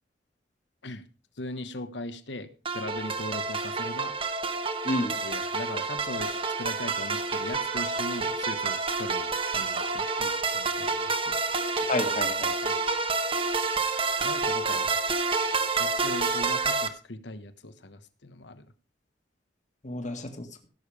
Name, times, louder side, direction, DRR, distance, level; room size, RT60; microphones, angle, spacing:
voice 1, 1.4-4.2 5.2-11.4 14.2-15.0 15.4-18.7, left 2 dB, 70° left, 11 dB, 1.3 m, -39 dB
sound 1, 2.6-16.9, right 4 dB, 30° right, 1.1 m, -28 dB
voice 2, 11.9-12.7 19.8-20.7, left 1 dB, 40° left, 5 dB, 1.9 m, -31 dB
16.5 x 7.2 x 5.0 m, 0.36 s
head